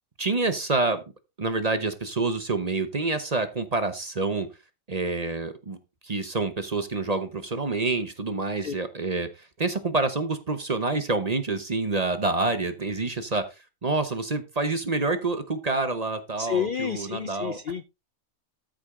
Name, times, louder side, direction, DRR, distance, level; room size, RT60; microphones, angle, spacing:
voice 1, 0.2-1.0 1.4-4.5 4.9-5.8 6.0-13.5 13.8-17.6, right 3 dB, 35° right, 10 dB, 0.8 m, -27 dB
voice 2, 16.4-17.8, left 8 dB, 65° left, 14 dB, 0.5 m, -30 dB
13.0 x 5.2 x 3.7 m, 0.26 s
omnidirectional pair, 1.5 m